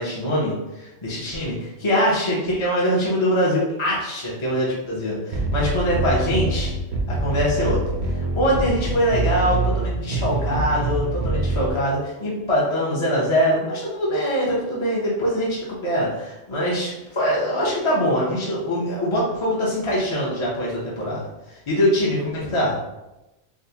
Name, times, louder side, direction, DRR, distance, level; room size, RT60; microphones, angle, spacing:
voice 1, 0.0-6.7 7.1-21.2 21.5-22.8, equal, 35° left, -6 dB, 0.4 m, -23 dB
sound 1, 5.3-11.7, right 2 dB, 60° right, 0.8 m, -25 dB
4.4 x 2.0 x 2.7 m, 0.98 s
omnidirectional pair, 1.4 m